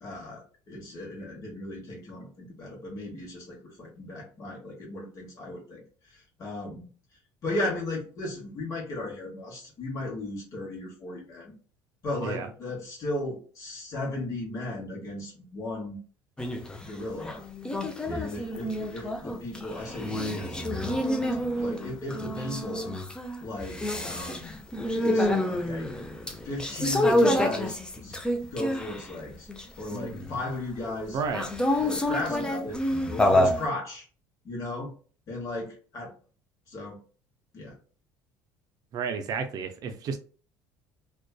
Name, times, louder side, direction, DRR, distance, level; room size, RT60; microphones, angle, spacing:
voice 1, 0.0-5.8 6.1-6.9 7.4-11.5 12.0-16.0 16.8-17.5 18.1-22.9 23.4-24.6 24.9-25.9 26.4-28.1 28.4-29.5 29.8-32.8 33.1-34.0 34.4-34.9 35.3-36.1 36.7-37.0 37.5-37.8, left 2 dB, 45° left, 1.0 m, -36 dB
voice 2, 12.2-12.5 31.1-31.5 38.9-40.2, right 5 dB, 50° right, 0.4 m, -31 dB
sound 1, 16.4-16.8 17.2-29.1 29.5-30.4 31.3-33.7, left 1 dB, 10° left, 0.4 m, -28 dB
2.5 x 2.2 x 2.2 m
supercardioid pair, 100°, 8 cm